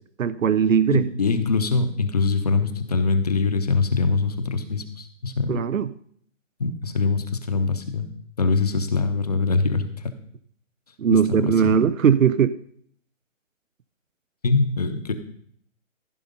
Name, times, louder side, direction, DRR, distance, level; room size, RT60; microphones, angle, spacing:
voice 1, 0.2-1.1 5.5-5.9 11.0-12.5, right 7 dB, 80° right, 16 dB, 0.7 m, -19 dB
voice 2, 0.9-5.6 6.6-8.1 8.4-10.1 11.4-11.8 14.4-15.1, left 4 dB, 30° left, 9 dB, 0.8 m, -23 dB
15.0 x 5.5 x 5.2 m, 0.63 s
hypercardioid pair, 165°, 39 cm